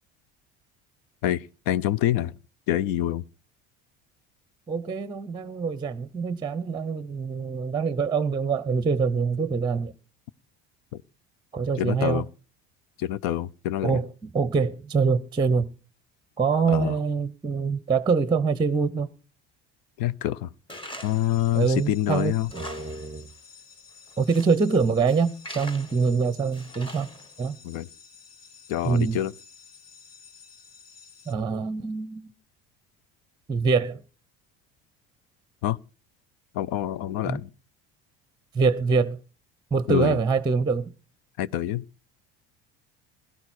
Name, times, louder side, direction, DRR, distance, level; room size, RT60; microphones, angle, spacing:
voice 1, 1.2-2.4 2.7-3.2 10.9-11.0 11.8-12.2 13.0-14.0 16.7-17.0 20.0-20.5 21.0-22.5 27.6-27.9 28.7-29.3 35.6-35.8 36.5-37.5 39.9-40.2 41.4-41.8, left 13 dB, 70° left, 0.6 m, -26 dB
voice 2, 4.7-9.9 11.5-12.2 13.8-15.7 16.4-19.1 21.5-23.3 24.2-27.1 27.4-27.6 28.8-29.2 31.3-32.3 33.5-34.0 37.3-37.4 38.5-39.2 39.7-40.9, right 5 dB, 10° right, 0.7 m, -24 dB
Tools, 20.7-21.3 21.7-21.8 22.3-23.1 23.4-23.5 24.1-24.6 25.1-26.1 26.5-27.4, equal, 15° left, 1.5 m, -42 dB
sound 1, 21.0-31.3, left 6 dB, 40° left, 1.8 m, -51 dB
16.5 x 12.0 x 4.3 m
supercardioid pair, 85°, 35 cm